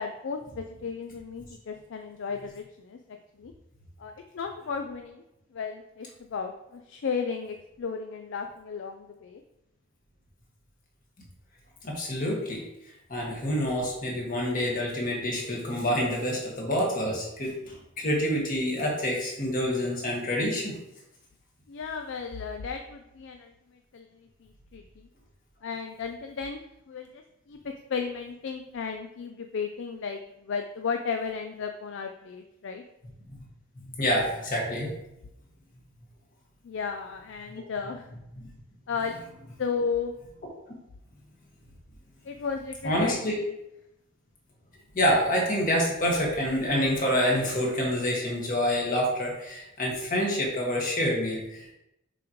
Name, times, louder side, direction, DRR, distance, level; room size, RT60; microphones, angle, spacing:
voice 1, 0.0-3.0 3.4-3.5 4.0-5.2 5.5-9.4 21.7-23.5 23.9-24.1 24.4-25.1 25.6-27.2 27.5-32.8 36.6-38.1 38.9-39.2 39.6-40.1 42.2-43.3, left 5 dB, 60° left, 5 dB, 0.4 m, -34 dB
voice 2, 11.8-12.6 13.1-20.8 33.3-33.4 33.8-35.0 37.5-37.6 38.4-38.5 42.8-43.4 44.9-51.7, equal, 40° left, -2 dB, 1.7 m, -27 dB
6.9 x 5.0 x 3.1 m, 0.88 s
head